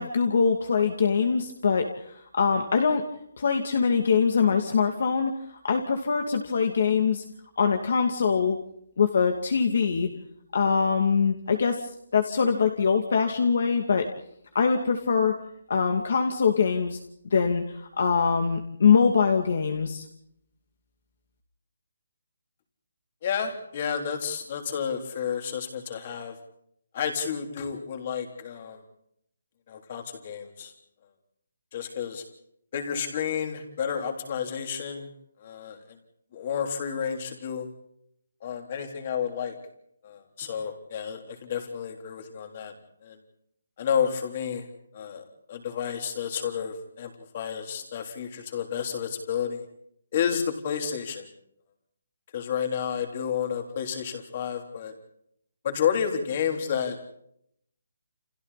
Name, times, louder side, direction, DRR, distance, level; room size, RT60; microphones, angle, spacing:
voice 1, 0.0-1.9 2.3-3.0 3.4-5.3 5.6-7.2 7.6-8.6 9.0-10.1 10.5-14.1 14.5-15.3 15.7-17.0 17.3-17.6 18.0-20.0, left 5 dB, 45° left, 5 dB, 2.5 m, -23 dB
voice 2, 23.2-26.4 26.9-28.8 29.7-30.7 31.7-32.2 32.7-35.1 35.4-36.0 36.3-37.7 38.4-39.6 40.0-42.7 43.0-43.2 43.8-44.7 44.9-49.7 50.1-51.3 52.3-54.9 55.6-57.1, left 7 dB, 25° left, 5 dB, 3.7 m, -31 dB
30.0 x 29.0 x 4.2 m, 0.72 s
hypercardioid pair, 175°, 0 cm